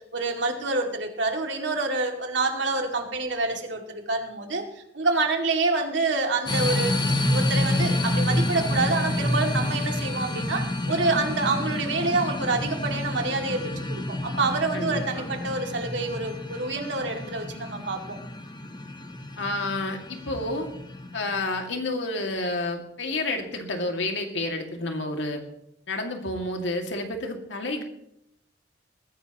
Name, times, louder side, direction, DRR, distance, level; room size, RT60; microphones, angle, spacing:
voice 1, 0.1-4.6 4.9-6.9 7.3-18.2, right 3 dB, 75° right, 2 dB, 2.3 m, -27 dB
sound 1, 6.5-21.5, left 1 dB, 25° left, 1.1 m, -28 dB
voice 2, 14.7-15.3 19.4-20.7 21.1-25.4 25.9-27.8, left 2 dB, 75° left, 3 dB, 2.2 m, -30 dB
20.0 x 15.0 x 3.0 m, 0.77 s
head